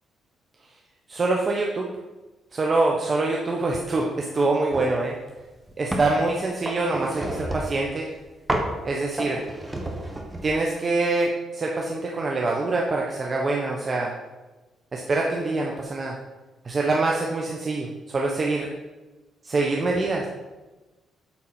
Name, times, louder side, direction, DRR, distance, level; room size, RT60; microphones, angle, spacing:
voice 1, 1.1-1.9 2.5-5.1 5.8-8.1 8.8-9.4 10.4-14.1 14.9-16.1 16.6-18.7 19.4-20.3, right 3 dB, 35° right, -1 dB, 1.0 m, -25 dB
sound 1, 4.7-5.0 5.4-6.2 6.7-7.9 8.5-8.8 9.2-10.6, right 1 dB, 15° right, 1.3 m, -30 dB
8.5 x 4.1 x 5.9 m, 1.2 s
cardioid pair, 90°, 0 cm